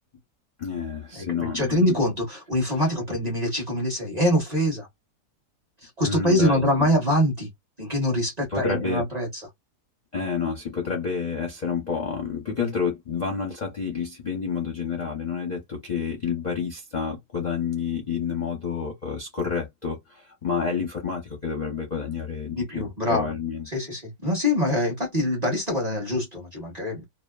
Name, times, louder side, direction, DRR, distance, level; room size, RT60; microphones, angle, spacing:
voice 1, 0.6-1.8 6.0-6.6 8.5-9.1 10.1-23.7, left 6 dB, 35° left, 0.7 m, -29 dB
voice 2, 1.1-4.9 5.8-7.5 7.8-9.4 22.5-23.3 23.7-27.0, left 1 dB, 30° right, 1.0 m, -24 dB
2.8 x 2.4 x 2.3 m
omnidirectional pair, 1.8 m